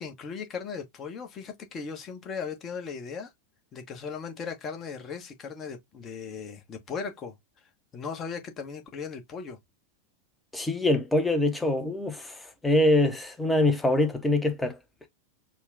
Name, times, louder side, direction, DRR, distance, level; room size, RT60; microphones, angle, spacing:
voice 1, 0.0-3.3 3.7-7.3 7.9-9.6, left 5 dB, 30° left, 1.3 m, -37 dB
voice 2, 10.5-14.8, left 1 dB, 5° left, 1.0 m, -24 dB
4.6 x 2.4 x 3.4 m
figure-of-eight pair, 90°, 0 cm